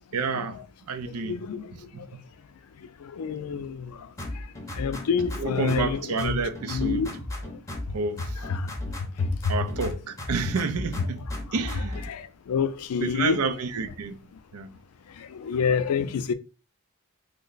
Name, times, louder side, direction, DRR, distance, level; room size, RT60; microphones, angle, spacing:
voice 1, 0.1-0.6 0.9-1.4 1.7-2.2 5.3-7.1 7.9-8.4 9.5-12.0 13.0-14.2 14.5-14.7, right 4 dB, 90° right, 0.5 m, -30 dB
voice 2, 1.0-2.1 3.0-4.1 4.3-4.5 4.7-6.4 6.7-7.2 8.4-8.7 9.2-9.5 12.1-13.4 15.2-16.3, left 6 dB, 90° left, 0.4 m, -28 dB
sound 1, 4.2-5.9 6.2-9.9 10.2-12.1, left 1 dB, 15° left, 0.7 m, -35 dB
3.1 x 2.1 x 3.8 m
head